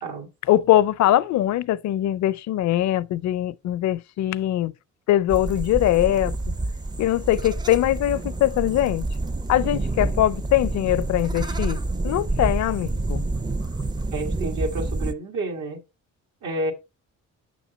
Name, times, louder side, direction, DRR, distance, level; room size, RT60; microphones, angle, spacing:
voice 1, 0.4-4.7 5.1-6.4 7.0-9.0 9.5-13.2, left 13 dB, 65° left, 0.5 m, -22 dB
sound 1, 5.3-15.1, right 2 dB, 15° right, 0.5 m, -28 dB
voice 2, 14.1-15.8 16.4-16.7, right 2 dB, 80° right, 1.8 m, -29 dB
6.1 x 6.1 x 4.1 m
cardioid pair, 90°, 30 cm